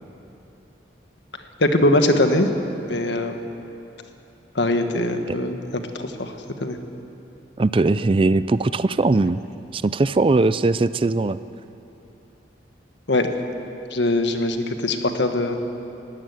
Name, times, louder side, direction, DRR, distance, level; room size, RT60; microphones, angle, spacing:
voice 1, 1.6-2.5 2.9-3.4 4.5-6.3 6.6-6.8 13.1-13.3 13.9-15.5, left 1 dB, 85° left, 6 dB, 1.6 m, -21 dB
voice 2, 7.6-9.4 9.7-11.4, right 3 dB, 30° right, 15 dB, 0.4 m, -20 dB
18.5 x 15.5 x 9.6 m, 2.9 s
head